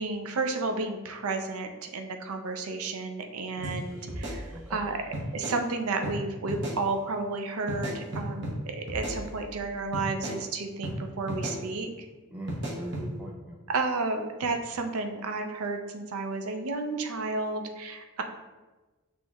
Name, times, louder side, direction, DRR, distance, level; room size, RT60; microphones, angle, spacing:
voice 1, 0.0-5.0 5.3-12.1 13.7-18.2, right 3 dB, 80° right, 5 dB, 0.5 m, -32 dB
voice 2, 3.6-4.0 4.5-4.8 12.3-13.6, right 1 dB, 5° right, -3 dB, 0.4 m, -41 dB
sound 1, 3.6-3.8 4.1-4.8 5.1-5.6 6.0-6.2 6.5-6.8 7.7-8.6 8.9-9.6 9.9-10.4 10.8-11.0 11.3-11.6 12.5-13.1, right 1 dB, 55° right, 0.9 m, -35 dB
6.2 x 3.0 x 2.3 m, 1.2 s
head